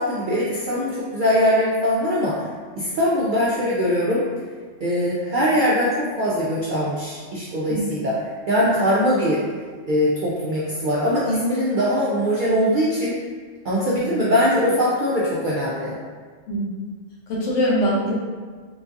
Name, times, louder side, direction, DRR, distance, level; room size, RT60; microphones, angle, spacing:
voice 1, 0.0-2.4 2.8-4.2 4.8-9.4 9.9-13.1 13.6-16.0, equal, 65° right, -6 dB, 0.5 m, -21 dB
voice 2, 17.3-18.2, equal, 75° left, -4 dB, 1.1 m, -22 dB
3.8 x 2.5 x 2.5 m, 1.5 s
omnidirectional pair, 1.3 m